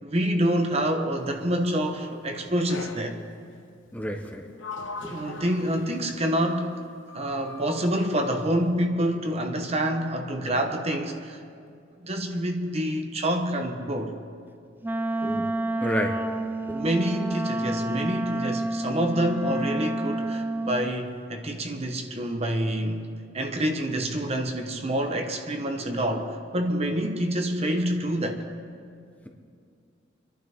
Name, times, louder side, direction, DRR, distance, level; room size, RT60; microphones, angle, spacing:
voice 1, 0.0-3.2 5.1-11.4 12.0-14.2 16.7-28.5, right 1 dB, 30° right, 1.0 m, -27 dB
Sliding door, 2.7-3.2 4.2-6.6 7.1-8.5, left 3 dB, 75° left, 1.1 m, -41 dB
voice 2, 3.9-4.4 5.0-5.1 15.2-15.5 15.8-16.2 16.7-16.8, equal, 10° left, 0.9 m, -30 dB
Wind instrument woodwind instrument, 14.8-20.9, right 1 dB, 10° right, 0.3 m, -29 dB
27.0 x 11.5 x 3.6 m
head